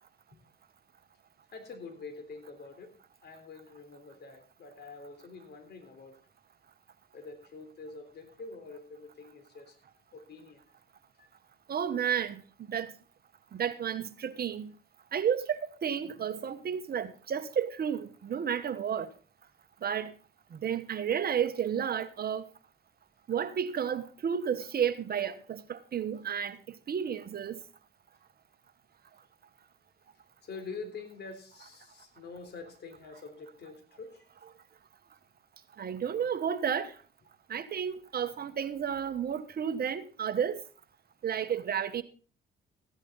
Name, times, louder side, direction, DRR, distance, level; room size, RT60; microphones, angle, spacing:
voice 1, 1.5-2.9 3.2-6.2 7.1-9.8 10.1-10.6 11.2-11.3 30.4-34.3, left 4 dB, 55° left, 3.6 m, -46 dB
voice 2, 11.7-12.4 12.7-12.9 13.5-14.7 15.1-19.1 19.8-20.1 20.5-22.5 23.3-26.6 26.9-27.6 35.8-36.9 37.5-40.6 41.2-42.0, right 8 dB, 50° right, 1.1 m, -32 dB
15.0 x 10.5 x 4.0 m
cardioid pair, 90°, 20 cm